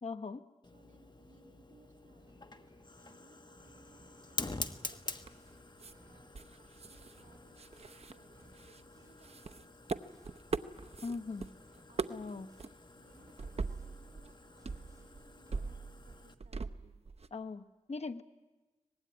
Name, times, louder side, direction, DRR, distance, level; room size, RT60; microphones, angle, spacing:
voice 1, 0.0-0.4 11.0-11.5 12.1-12.5 17.3-18.2, left 4 dB, 55° left, 7 dB, 1.2 m, -40 dB
Fire, 0.6-16.3, left 2 dB, 35° left, 1.4 m, -48 dB
voice 2, 0.7-10.4 11.9-12.4 12.9-17.1, right 3 dB, 80° right, 3 dB, 2.7 m, -65 dB
sound 1, 2.2-3.2 3.6-12.7 13.1-16.0, right 1 dB, 30° right, 5.9 m, -65 dB
sound 2, 4.9-5.5 5.8-5.9 6.3-7.2 7.5-8.8 9.2-11.5 11.7-12.3 12.6-12.7 13.4-14.3 14.6-17.3, right 4 dB, 55° right, 0.8 m, -41 dB
24.5 x 20.0 x 9.7 m, 1.2 s
wide cardioid pair, 60°, 13 cm